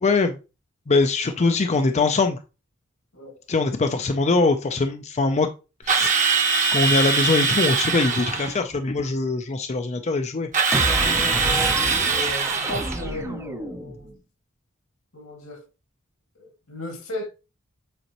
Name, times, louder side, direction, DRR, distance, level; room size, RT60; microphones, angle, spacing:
voice 1, 0.0-0.3 0.9-2.4 3.5-5.5 5.8-6.2 6.7-10.5, left 3 dB, 30° left, 0.5 m, -22 dB
voice 2, 3.1-3.4 11.2-11.5 12.0-14.2 15.1-15.6 16.4-17.3, left 1 dB, 80° left, 2.1 m, -36 dB
Drill, 5.9-8.6 10.5-13.0, right 5 dB, 40° right, 1.1 m, -22 dB
sound 1, 10.7-14.1, right 1 dB, 15° right, 0.6 m, -28 dB
8.0 x 4.1 x 3.0 m
head